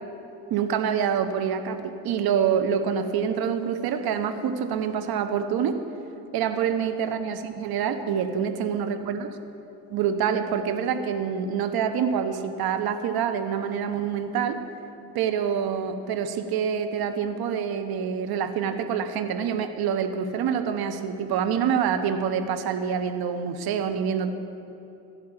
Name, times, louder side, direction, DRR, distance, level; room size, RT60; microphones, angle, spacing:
voice 1, 0.5-5.8 6.3-9.3 9.9-14.6 15.1-24.3, right 7 dB, 50° right, 9 dB, 1.1 m, -26 dB
13.0 x 9.3 x 7.6 m, 2.9 s
hypercardioid pair, 55°, 49 cm